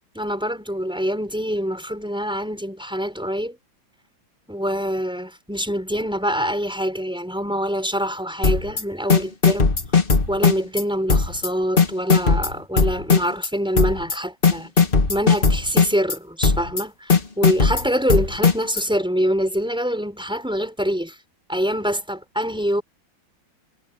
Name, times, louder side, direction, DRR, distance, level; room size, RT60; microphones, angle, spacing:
voice 1, 0.2-3.6 4.5-9.7 10.3-14.7 15.1-21.2 21.5-22.8, equal, ahead, 5.2 m, -25 dB
sound 1, 8.4-8.8 9.1-10.8 11.1-11.5 11.8-13.5 13.8-14.2 14.4-16.2 16.4-16.8 17.1-18.8, left 5 dB, 30° left, 1.7 m, -17 dB
omnidirectional pair, 2.1 m